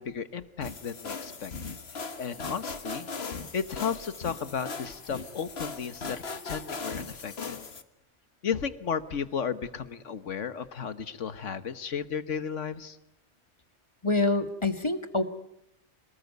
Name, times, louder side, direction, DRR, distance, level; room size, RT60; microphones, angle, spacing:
voice 1, 0.0-1.5 1.9-3.1 3.5-7.6 8.4-13.0, left 7 dB, 80° left, 12 dB, 1.6 m, -34 dB
sound 1, 0.6-7.8, left 4 dB, 60° left, 1.7 m, -38 dB
voice 2, 14.0-15.2, left 3 dB, 25° left, 9 dB, 1.6 m, -26 dB
27.0 x 19.5 x 9.4 m, 0.83 s
omnidirectional pair, 1.2 m